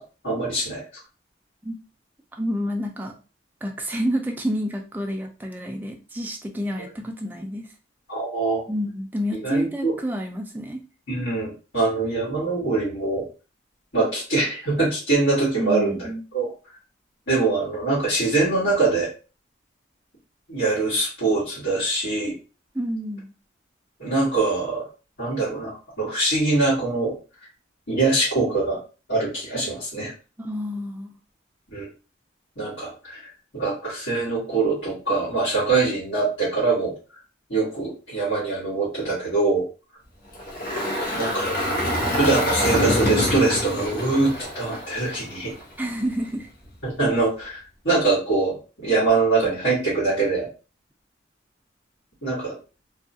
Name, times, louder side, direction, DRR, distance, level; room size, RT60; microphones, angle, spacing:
voice 1, 0.2-0.8 8.1-8.6 9.4-9.9 11.1-13.2 13.9-16.0 16.3-16.5 17.3-19.1 20.5-22.3 24.0-24.9 25.2-27.1 27.9-28.8 29.1-30.1 31.7-31.9 32.6-33.3 33.5-36.9 37.5-39.6 41.1-41.5 41.8-45.5 46.8-48.5 48.8-50.5 52.2-52.6, right 3 dB, 90° left, -9 dB, 1.5 m, -23 dB
voice 2, 2.3-3.2 3.6-7.7 8.7-10.8 15.6-16.3 22.7-23.3 30.4-31.1 45.8-46.5, equal, 10° right, 3 dB, 0.3 m, -29 dB
Engine, 40.3-45.6, left 1 dB, 50° left, 0.8 m, -25 dB
2.7 x 2.3 x 2.6 m, 0.34 s
head